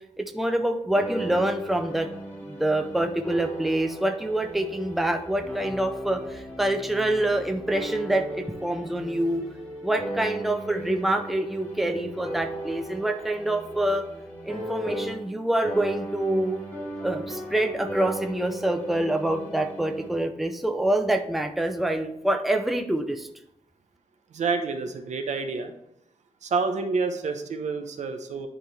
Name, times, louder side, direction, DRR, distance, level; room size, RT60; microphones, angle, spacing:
voice 1, 0.2-2.1 2.4-9.4 9.8-14.1 14.4-16.6 17.0-23.3, right 1 dB, ahead, 5 dB, 0.5 m, -26 dB
sound 1, 0.9-15.4 15.6-20.1, right 1 dB, 15° left, 1.9 m, -37 dB
voice 2, 24.3-25.7 26.4-28.5, right 4 dB, 80° right, 7 dB, 0.8 m, -28 dB
10.5 x 3.7 x 3.3 m, 0.78 s
wide cardioid pair, 145°, 12 cm